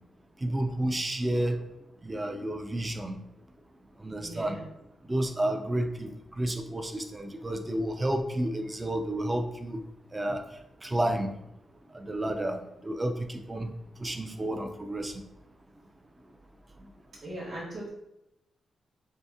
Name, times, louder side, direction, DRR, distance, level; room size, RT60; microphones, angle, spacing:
voice 1, 0.4-1.6 2.0-3.2 4.0-4.6 5.1-6.1 6.4-9.8 10.1-10.4 10.8-11.3 11.9-13.7 14.0-15.1, right 1 dB, 20° right, 6 dB, 0.4 m, -30 dB
voice 2, 4.2-4.7 17.2-17.9, right 1 dB, 40° right, -6 dB, 1.0 m, -39 dB
3.4 x 2.8 x 3.5 m, 0.87 s
cardioid pair, 105°, 0 cm